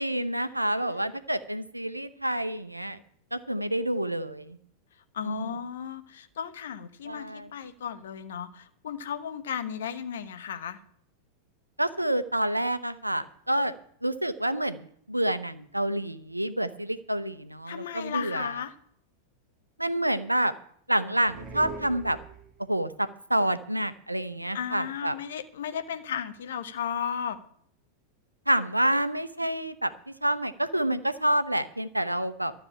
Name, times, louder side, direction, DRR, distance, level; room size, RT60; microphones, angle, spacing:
voice 1, 0.0-3.0 3.3-4.6 5.2-5.5 7.0-7.5 11.8-13.7 14.0-18.6 19.8-20.5 20.9-22.2 22.7-25.1 28.5-29.9 30.2-32.5, right 1 dB, 85° right, 13 dB, 0.7 m, -28 dB
voice 2, 5.1-10.8 17.7-18.7 24.5-27.4, left 8 dB, 60° left, 10 dB, 1.0 m, -35 dB
sound 1, 21.2-22.8, right 4 dB, 25° right, 1.7 m, -42 dB
12.5 x 6.7 x 8.5 m, 0.64 s
figure-of-eight pair, 90°, 0 cm